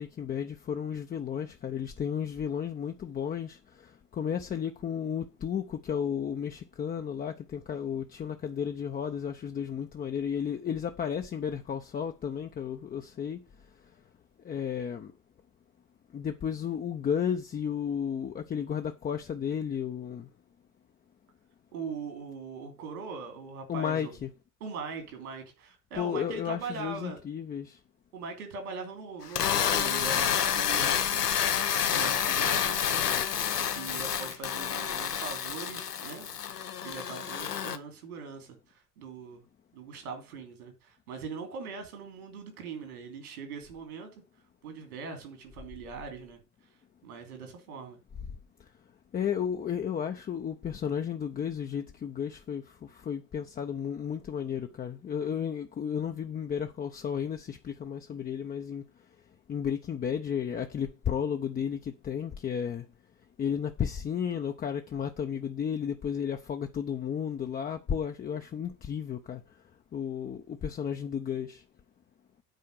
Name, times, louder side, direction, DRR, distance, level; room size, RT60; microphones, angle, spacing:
voice 1, 0.0-13.4 14.4-15.1 16.1-20.3 23.7-24.3 26.0-27.8 49.1-58.8 59.5-62.9 63.4-69.4 69.9-71.6, left 8 dB, 20° left, 0.6 m, -33 dB
voice 2, 21.7-24.2 24.6-27.2 28.1-31.2 31.9-33.0 33.7-36.3 36.8-39.4 39.7-44.1 44.6-46.4 47.0-48.0, right 5 dB, 70° right, 2.9 m, -41 dB
sound 1, 29.2-37.8, left 8 dB, 80° left, 0.8 m, -29 dB
9.0 x 4.4 x 6.4 m
figure-of-eight pair, 65°, 46 cm